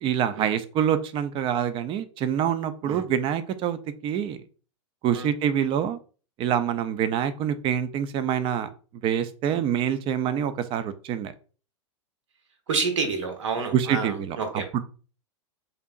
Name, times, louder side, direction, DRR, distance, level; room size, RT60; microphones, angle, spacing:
voice 1, 0.0-4.4 5.0-6.0 6.4-8.7 9.0-11.3 13.7-14.4 14.7-14.8, right 9 dB, 30° right, 13 dB, 0.6 m, -26 dB
voice 2, 12.7-14.6, right 4 dB, 70° right, 5 dB, 1.4 m, -29 dB
6.7 x 2.8 x 2.5 m, 0.38 s
figure-of-eight pair, 95°, 16 cm